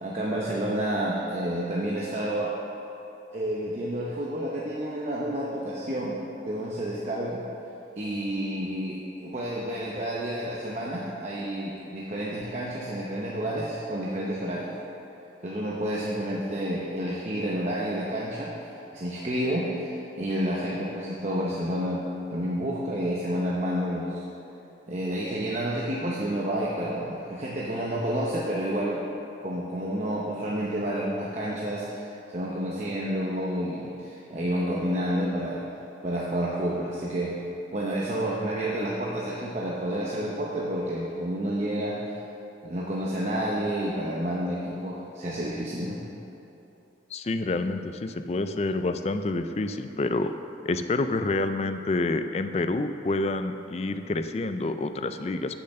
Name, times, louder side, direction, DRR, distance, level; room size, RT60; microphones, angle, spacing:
voice 1, 0.0-2.5 3.3-6.2 6.5-7.4 8.0-14.7 15.4-18.5 18.9-22.0 22.3-24.3 24.9-29.0 29.4-35.6 36.0-37.3 37.7-42.0 42.6-46.0, right 1 dB, 40° right, -4 dB, 0.8 m, -30 dB
voice 2, 47.1-50.3 50.6-55.6, left 2 dB, 35° left, 9 dB, 0.4 m, -28 dB
7.7 x 7.0 x 6.7 m, 3.0 s
head